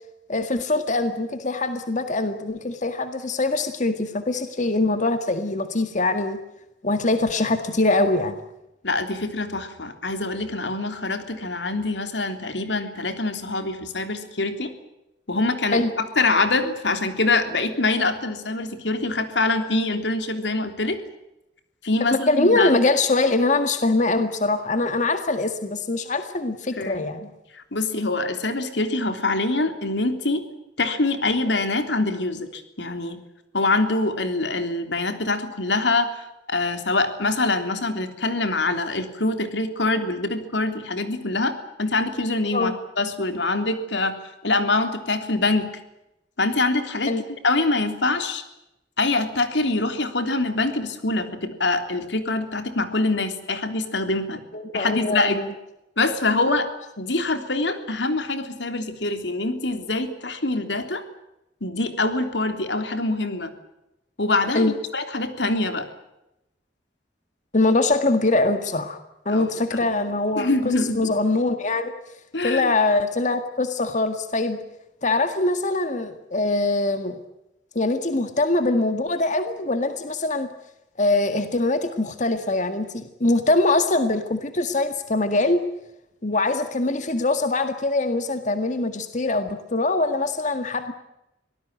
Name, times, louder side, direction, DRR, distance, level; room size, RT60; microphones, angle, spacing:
voice 1, 0.3-6.4 6.8-8.4 15.7-15.9 22.3-27.3 42.5-42.7 47.1-47.2 54.5-55.5 64.5-64.7 67.5-69.0 69.3-71.9 72.4-74.6 75.0-77.2 77.8-80.5 81.0-85.6 86.2-90.9, left 2 dB, 45° left, 8 dB, 1.9 m, -23 dB
voice 2, 8.8-14.7 15.3-21.0 21.8-22.7 26.8-27.0 27.5-30.4 30.8-33.2 33.5-41.5 41.8-44.2 44.4-45.7 46.4-47.1 47.4-48.4 49.0-54.4 54.7-55.4 56.0-56.7 57.0-61.0 61.6-63.5 64.2-65.9 69.3-69.5 70.4-71.0 72.3-72.7, left 2 dB, 90° left, 8 dB, 3.3 m, -24 dB
24.5 x 18.5 x 9.0 m, 0.88 s
head